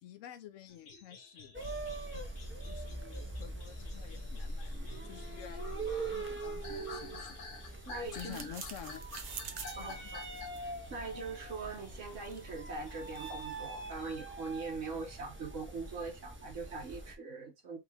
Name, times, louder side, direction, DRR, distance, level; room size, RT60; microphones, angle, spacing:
voice 1, 0.0-1.6 2.7-7.4 7.7-7.8 8.1-9.0 9.8-10.1, left 9 dB, 85° left, 1.0 m, -50 dB
sound 1, 0.7-12.5 12.9-14.2, left 4 dB, 70° left, 1.3 m, -52 dB
sound 2, 1.5-17.1, right 2 dB, 15° right, 0.5 m, -43 dB
voice 2, 7.9-8.5 9.8-10.2 10.6-17.8, right 4 dB, 80° right, 1.5 m, -42 dB
sound 3, 8.1-13.6, right 6 dB, 55° right, 0.9 m, -49 dB
5.3 x 2.4 x 3.3 m
omnidirectional pair, 1.3 m